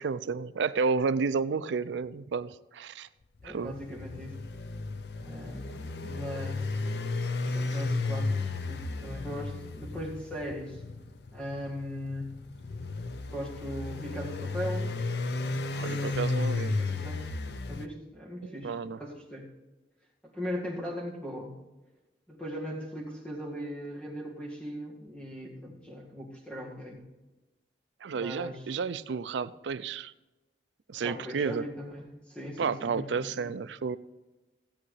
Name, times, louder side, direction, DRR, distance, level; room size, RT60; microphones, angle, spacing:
voice 1, 0.0-3.1 3.4-3.8 15.7-16.7 18.4-19.0 28.0-30.1 30.9-31.7 32.6-34.0, right 5 dB, 80° right, 15 dB, 0.4 m, -31 dB
sound 1, 3.4-17.9, left 3 dB, 65° left, 0.6 m, -34 dB
voice 2, 3.4-4.4 5.2-6.8 7.4-10.8 11.3-12.3 13.3-14.9 15.8-17.2 17.7-19.5 20.3-21.6 22.3-27.0 28.1-28.7 30.9-33.5, equal, 5° left, -2 dB, 1.9 m, -39 dB
16.0 x 8.5 x 3.3 m, 1.1 s
head